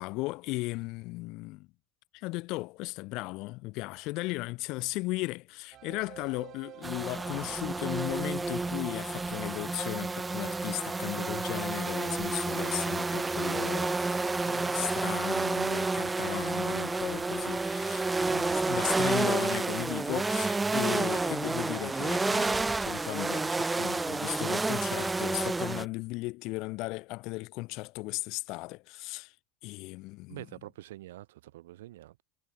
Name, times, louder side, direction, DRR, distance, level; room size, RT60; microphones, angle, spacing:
voice 1, 0.0-1.7 2.1-29.3 29.6-30.5, left 23 dB, 60° left, 2.5 m, -36 dB
sound 1, 5.7-20.7, right 13 dB, 50° right, 3.2 m, -55 dB
sound 2, 6.8-25.8, right 3 dB, 15° right, 1.1 m, -30 dB
voice 2, 30.3-32.2, right 15 dB, 80° right, 3.0 m, -46 dB
hypercardioid pair, 95°, 0 cm